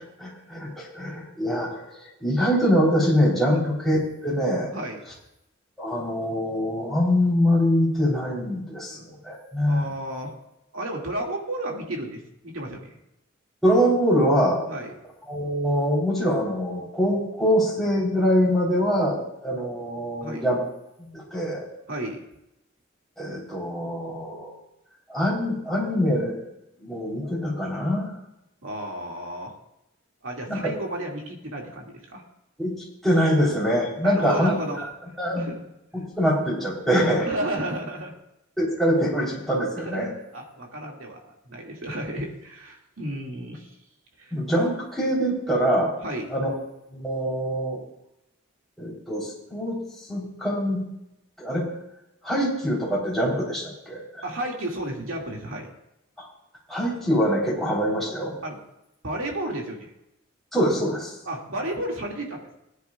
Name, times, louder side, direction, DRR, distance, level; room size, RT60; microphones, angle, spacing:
voice 1, 0.2-1.8 2.2-4.0 4.2-4.7 5.8-9.8 13.6-14.6 15.3-20.6 21.1-21.7 23.2-24.5 25.1-26.4 26.8-28.1 30.5-30.7 32.6-32.8 33.0-34.5 35.2-35.5 35.9-37.3 38.6-40.1 44.3-45.9 46.3-46.5 46.9-47.8 48.8-49.8 50.1-50.8 51.4-51.6 52.2-54.2 56.7-58.3 60.5-61.1, equal, ahead, -7 dB, 3.7 m, -24 dB
voice 2, 4.7-5.0 8.9-9.1 9.6-10.3 10.7-12.9 14.7-14.9 20.2-20.5 21.9-22.2 28.6-29.5 30.2-32.2 34.0-34.8 35.3-35.5 37.3-38.1 39.8-40.1 40.3-43.7 44.2-44.4 46.0-46.3 54.2-55.7 58.4-58.6 59.0-59.9 61.3-62.6, right 1 dB, 85° right, -1 dB, 2.3 m, -32 dB
18.5 x 9.8 x 2.4 m, 0.87 s
head